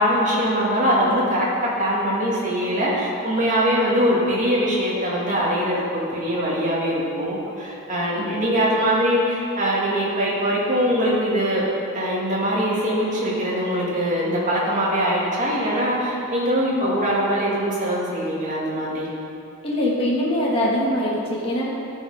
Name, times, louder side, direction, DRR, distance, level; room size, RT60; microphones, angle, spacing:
voice 1, 0.0-1.5 1.8-11.6 11.9-19.1, equal, 35° right, -6 dB, 2.1 m, -22 dB
voice 2, 19.6-21.7, left 1 dB, 25° left, -5 dB, 1.6 m, -23 dB
13.5 x 5.5 x 5.0 m, 2.7 s
head